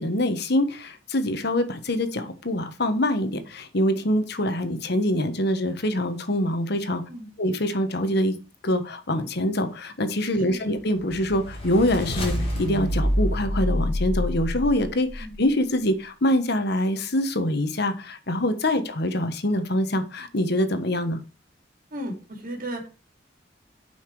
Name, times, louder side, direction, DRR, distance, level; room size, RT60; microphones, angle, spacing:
voice 1, 0.0-7.0 7.4-8.3 8.6-21.2, left 1 dB, 60° left, 9 dB, 1.4 m, -25 dB
voice 2, 10.5-10.8 15.2-15.4 18.7-18.9 21.9-22.9, right 1 dB, 50° right, 1 dB, 3.3 m, -35 dB
sound 1, 10.9-15.2, left 1 dB, 35° left, 3.8 m, -27 dB
8.2 x 5.9 x 4.8 m, 0.33 s
head